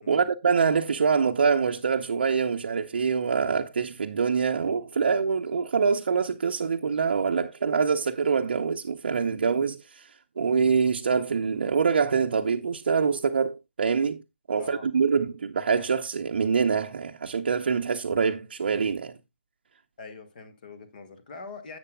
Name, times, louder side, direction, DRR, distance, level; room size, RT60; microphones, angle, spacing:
voice 1, 0.1-10.1 10.4-14.2 14.5-19.1, right 5 dB, 60° right, 0.7 m, -25 dB
voice 2, 14.5-14.9 20.0-21.8, left 4 dB, 45° left, 1.6 m, -43 dB
13.0 x 8.1 x 2.2 m
figure-of-eight pair, 140°, 6 cm